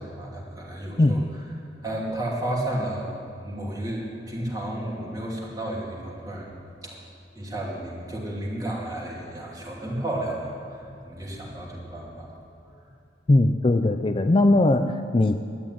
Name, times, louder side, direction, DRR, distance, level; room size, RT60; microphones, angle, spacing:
voice 1, 0.0-1.2 1.8-6.5 6.8-7.0 7.3-12.9, right 1 dB, 20° right, -4 dB, 2.9 m, -32 dB
voice 2, 1.0-1.3 13.3-15.4, left 2 dB, 30° left, 8 dB, 0.4 m, -20 dB
12.5 x 9.9 x 9.3 m, 2.6 s
head